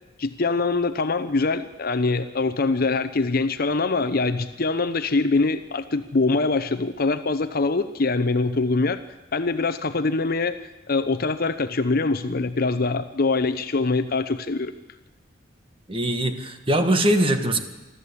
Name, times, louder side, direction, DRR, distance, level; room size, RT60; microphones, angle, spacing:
voice 1, 0.2-9.0 9.3-10.6 10.9-14.7, left 3 dB, 50° left, 11 dB, 0.8 m, -23 dB
voice 2, 15.9-17.6, right 1 dB, 25° right, 7 dB, 1.6 m, -21 dB
25.5 x 12.5 x 8.5 m, 1.1 s
head